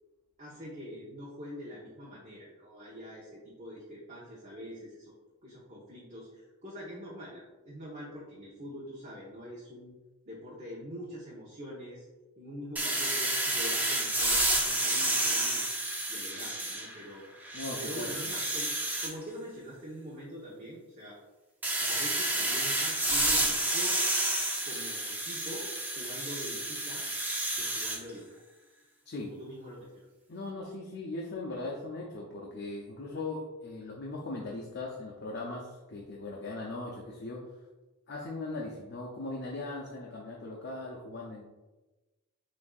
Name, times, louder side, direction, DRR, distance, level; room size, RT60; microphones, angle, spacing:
voice 1, 0.4-5.1 5.4-9.9 10.2-12.1 12.4-15.7 16.1-17.2 17.8-18.7 19.0-21.2 21.9-24.0 24.6-27.1 27.5-28.4 29.2-29.8, equal, 35° right, -6 dB, 0.9 m, -44 dB
sound 1, 12.8-17.0 17.4-19.1 21.6-28.0, right 1 dB, 10° right, 0.4 m, -30 dB
voice 2, 17.5-18.2 29.1-29.4 30.3-37.5 38.1-41.4, left 2 dB, 50° left, -2 dB, 0.5 m, -39 dB
7.1 x 2.6 x 2.4 m, 1.1 s
head